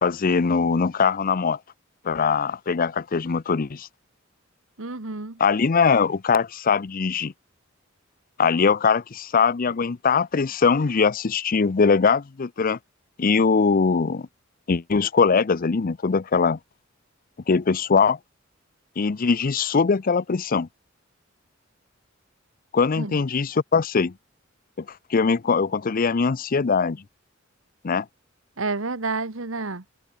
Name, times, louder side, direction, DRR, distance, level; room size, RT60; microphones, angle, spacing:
voice 1, 0.0-1.6 2.0-3.9 5.4-7.3 8.4-12.8 13.2-14.3 14.7-16.6 17.5-18.2 19.0-20.7 22.7-24.1 24.8-24.9 25.1-27.0 27.8-28.1, left 5 dB, 45° left, 0.5 m, -21 dB
voice 2, 4.8-5.4 23.0-23.2 28.6-29.8, right 3 dB, 75° right, 1.6 m, -29 dB
head